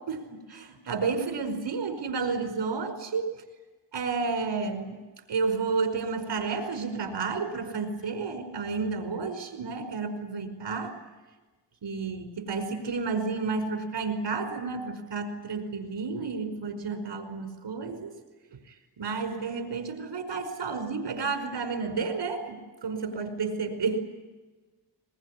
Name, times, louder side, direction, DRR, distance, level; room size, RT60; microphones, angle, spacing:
voice 1, 0.1-3.3 3.9-5.0 5.3-10.9 11.8-18.1 19.0-24.0, right 4 dB, 80° right, 6 dB, 5.1 m, -31 dB
22.5 x 22.0 x 9.8 m, 1.2 s
wide cardioid pair, 155°, 42 cm